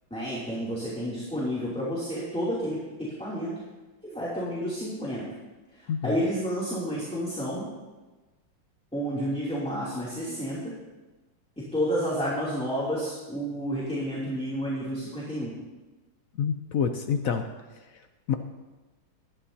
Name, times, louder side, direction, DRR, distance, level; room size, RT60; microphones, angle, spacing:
voice 1, 0.1-3.5 4.0-5.2 5.7-7.7 8.9-10.7 11.6-15.6, equal, 5° left, -8 dB, 2.7 m, -30 dB
voice 2, 16.4-17.4 18.3-18.4, left 7 dB, 75° left, 6 dB, 0.7 m, -27 dB
20.0 x 12.5 x 2.8 m, 1.2 s
omnidirectional pair, 2.3 m